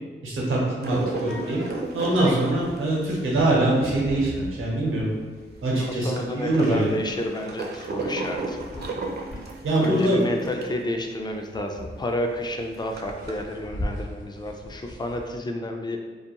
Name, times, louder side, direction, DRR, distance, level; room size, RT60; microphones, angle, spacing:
voice 1, 0.2-1.6 1.9-5.1 5.6-6.9 9.6-10.5, right 1 dB, 85° right, -4 dB, 0.7 m, -23 dB
sound 1, 0.8-4.8 5.2-5.3 5.5-10.8 11.2-11.3 11.5-11.6 12.1-13.4, right 3 dB, 50° right, 0.4 m, -33 dB
sound 2, 1.3-10.8 11.1-11.2 11.4-15.3, equal, 40° left, 0.7 m, -39 dB
voice 2, 5.7-8.6 9.8-16.1, left 1 dB, 20° left, 3 dB, 0.4 m, -30 dB
2.3 x 2.2 x 2.9 m, 1.4 s
cardioid pair, 45°, 21 cm